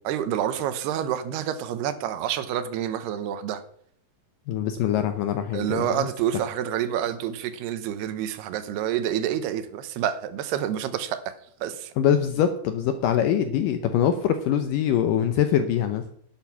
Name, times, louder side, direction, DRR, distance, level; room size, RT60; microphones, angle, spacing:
voice 1, 0.0-3.6 5.5-11.3 11.6-11.9, right 10 dB, 80° right, 2.9 m, -28 dB
voice 2, 4.5-6.1 12.0-16.0, left 9 dB, 75° left, 2.0 m, -23 dB
11.5 x 8.9 x 6.0 m
omnidirectional pair, 4.7 m